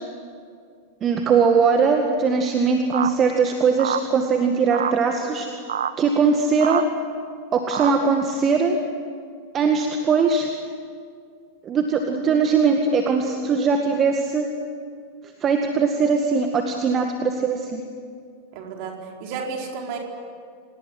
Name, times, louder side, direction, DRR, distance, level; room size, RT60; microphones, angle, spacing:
voice 1, 1.0-5.5 6.0-6.8 7.5-8.8 9.5-10.5 11.6-14.5 15.4-17.8, right 5 dB, 25° right, 4 dB, 1.9 m, -20 dB
sound 1, 2.9-3.1 3.8-4.0 4.7-4.9 5.7-5.9 6.6-6.8 7.7-7.9, right 9 dB, 65° right, 1.2 m, -25 dB
voice 2, 18.5-20.0, right 5 dB, 45° right, 1 dB, 4.7 m, -32 dB
27.5 x 19.0 x 9.9 m, 2.2 s
figure-of-eight pair, 90°, 0 cm